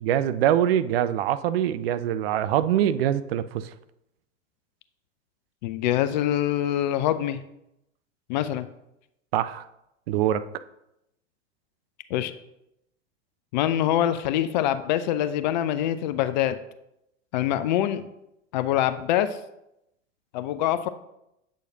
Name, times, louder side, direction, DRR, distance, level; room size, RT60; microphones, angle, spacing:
voice 1, 0.0-3.7 9.3-9.6 10.1-10.4, right 11 dB, 50° right, 13 dB, 0.5 m, -24 dB
voice 2, 5.6-7.4 8.3-8.7 12.1-12.3 13.5-16.6 17.3-18.0 18.5-19.4 20.3-20.9, left 12 dB, 40° left, 12 dB, 0.4 m, -24 dB
8.1 x 6.4 x 2.7 m, 0.84 s
figure-of-eight pair, 90°, 39 cm